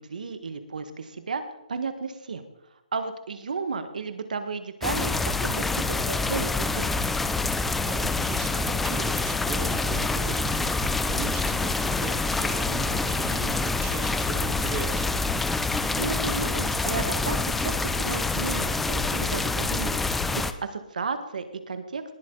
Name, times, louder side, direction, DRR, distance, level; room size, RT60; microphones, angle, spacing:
voice 1, 0.0-1.4 1.7-2.5 2.9-6.9 16.0-22.0, right 4 dB, 75° right, 9 dB, 1.7 m, -33 dB
sound 1, 4.8-20.5, left 3 dB, 5° left, 0.3 m, -26 dB
voice 2, 7.9-10.8 11.1-15.1, right 8 dB, 15° right, 7 dB, 0.7 m, -38 dB
19.5 x 8.6 x 4.0 m, 0.87 s
hypercardioid pair, 165°, 4 cm